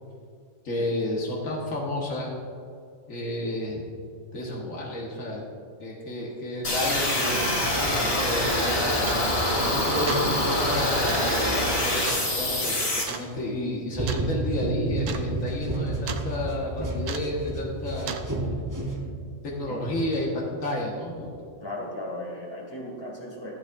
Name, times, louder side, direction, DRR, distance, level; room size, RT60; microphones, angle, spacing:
voice 1, 0.6-2.3 3.1-3.8 4.3-5.4 5.8-9.0 9.6-12.8 13.1-18.2 19.4-21.3, left 1 dB, 80° left, -3 dB, 1.9 m, -31 dB
sound 1, 6.6-13.0, left 1 dB, 50° left, 2.1 m, -25 dB
sound 2, 9.1-9.4 9.9-10.3 11.1-11.3 12.1-12.3 13.1-13.3 14.1-14.3 14.6-14.7 15.0-15.3 15.5-16.3 17.1-17.4 18.1-18.3, right 6 dB, 75° right, 1.1 m, -35 dB
sound 3, 13.9-19.5, right 2 dB, 15° right, 0.8 m, -30 dB
voice 2, 21.6-23.6, left 1 dB, 20° left, -2 dB, 2.2 m, -36 dB
16.0 x 8.2 x 2.6 m, 2.3 s
omnidirectional pair, 1.4 m